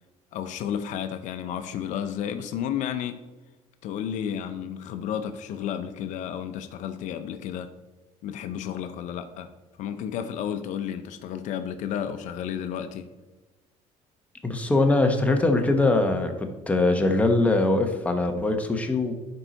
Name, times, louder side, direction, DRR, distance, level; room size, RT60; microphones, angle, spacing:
voice 1, 0.3-3.2 3.8-7.7 8.2-9.5 9.8-13.1, left 9 dB, 65° left, 9 dB, 0.6 m, -32 dB
voice 2, 14.4-19.1, left 2 dB, 10° left, 4 dB, 1.0 m, -22 dB
11.0 x 4.6 x 4.0 m, 1.1 s
cardioid pair, 115°, 13 cm